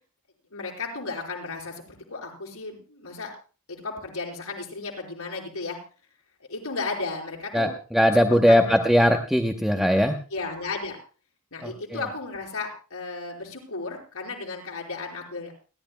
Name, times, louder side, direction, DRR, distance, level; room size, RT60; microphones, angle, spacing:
voice 1, 0.5-3.3 3.7-5.8 6.5-7.7 8.3-8.8 10.3-11.0 11.5-15.5, left 3 dB, 80° left, -1 dB, 5.2 m, -34 dB
voice 2, 7.5-10.2 11.6-11.7, equal, ahead, 3 dB, 0.8 m, -20 dB
29.5 x 11.5 x 2.3 m, 0.35 s
head